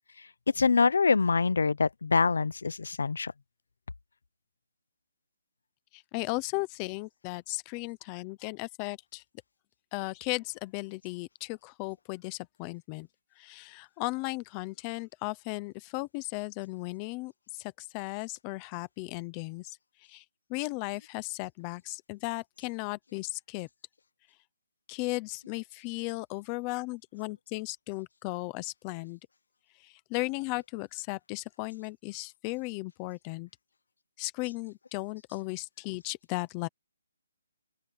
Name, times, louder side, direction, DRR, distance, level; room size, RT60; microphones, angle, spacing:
voice 1, 0.6-3.3, left 4 dB, 75° left, 0.7 m, -25 dB
voice 2, 5.9-9.2 9.9-13.1 13.4-20.2 20.5-23.7 24.9-29.2 29.8-33.5 34.2-36.7, left 24 dB, 15° left, 0.7 m, -36 dB
open air
hypercardioid pair, 180°, 0 cm